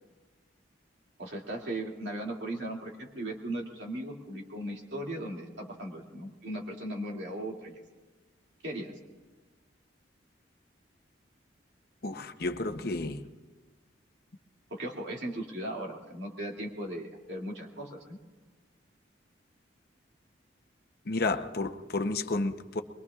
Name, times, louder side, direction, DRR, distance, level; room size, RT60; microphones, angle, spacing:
voice 1, 1.2-7.8 8.6-8.9 14.7-18.2, right 1 dB, 65° right, -1 dB, 2.5 m, -37 dB
voice 2, 12.0-13.2 21.1-22.8, left 2 dB, 55° left, 6 dB, 0.8 m, -31 dB
23.0 x 22.5 x 2.4 m, 1.3 s
head